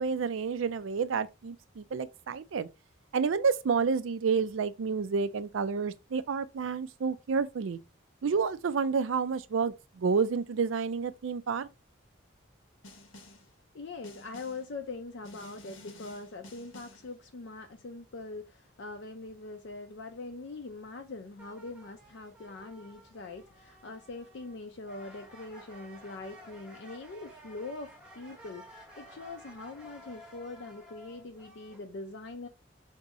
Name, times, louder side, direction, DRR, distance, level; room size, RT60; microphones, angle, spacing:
voice 1, 0.0-2.7 3.1-7.8 8.2-11.7, right 5 dB, 80° right, 0.4 m, -29 dB
Snare drum, 12.8-13.5 14.0-14.7 15.2-17.1, left 2 dB, 80° left, 0.9 m, -51 dB
voice 2, 13.7-32.5, left 3 dB, 65° left, 0.4 m, -43 dB
sound 1, 21.4-24.6 24.8-31.8, equal, 5° right, 0.8 m, -53 dB
3.5 x 2.7 x 4.1 m
head